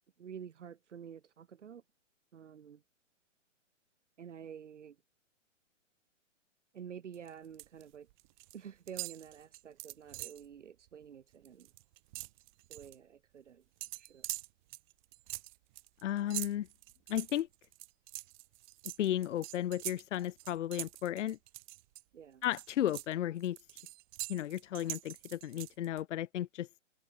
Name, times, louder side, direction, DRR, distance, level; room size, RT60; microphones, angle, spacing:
voice 1, 0.2-1.8 2.3-2.8 4.2-5.0 6.7-8.1 8.5-11.7 12.7-13.6 14.0-14.3 22.1-22.4, right 8 dB, 70° right, 6.9 m, -49 dB
sound 1, 7.1-7.8 8.1-8.6 8.9-10.5 10.9-11.0 11.3-13.0 13.8-22.0 22.4-26.0, right 19 dB, 40° right, 1.6 m, -44 dB
voice 2, 16.0-16.7 17.1-17.5 19.0-21.4 22.4-23.6 24.3-26.7, left 12 dB, 75° left, 0.5 m, -34 dB
hypercardioid pair, 130°, 37 cm